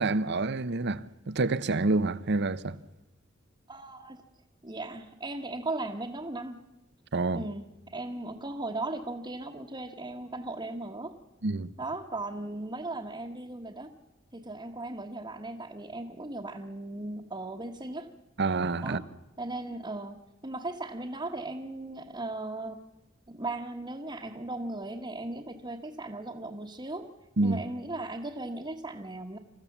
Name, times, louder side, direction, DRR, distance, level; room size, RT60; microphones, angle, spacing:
voice 1, 0.0-2.8 7.1-7.5 11.4-11.7 18.4-19.0 27.4-27.6, right 3 dB, 60° right, 0.8 m, -28 dB
voice 2, 3.7-4.2 4.6-6.6 7.3-11.1 11.8-13.9 14.3-18.1 18.8-19.0 19.4-22.8 23.3-27.1 27.4-29.4, right 2 dB, 25° right, 1.3 m, -37 dB
27.5 x 14.5 x 7.3 m
head